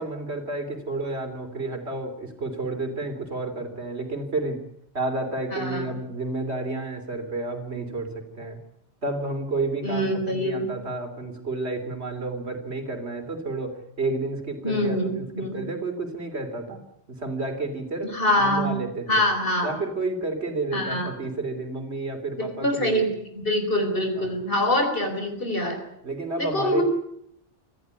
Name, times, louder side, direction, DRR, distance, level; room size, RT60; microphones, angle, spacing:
voice 1, 0.0-4.6 4.9-8.6 9.0-19.2 19.6-23.1 24.2-24.4 26.0-26.8, right 2 dB, 70° right, 7 dB, 3.6 m, -31 dB
voice 2, 5.5-5.9 9.8-10.7 14.6-15.6 18.0-18.7 19.1-19.7 20.7-21.1 22.6-25.8 26.4-26.8, left 1 dB, 55° left, 6 dB, 4.6 m, -25 dB
25.5 x 14.5 x 9.7 m, 0.75 s
omnidirectional pair, 1.2 m